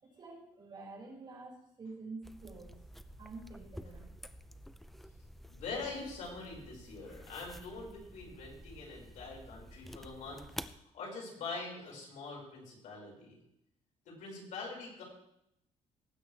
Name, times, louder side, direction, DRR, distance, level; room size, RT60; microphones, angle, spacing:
voice 1, 0.0-2.7 3.2-4.1, right 3 dB, 40° right, -4 dB, 5.5 m, -48 dB
sound 1, 2.2-10.8, equal, ahead, 0.5 m, -50 dB
voice 2, 5.5-10.4 10.9-13.4 14.1-15.0, left 3 dB, 75° left, -2 dB, 5.4 m, -44 dB
19.0 x 8.9 x 3.4 m, 0.77 s
cardioid pair, 140°, 13 cm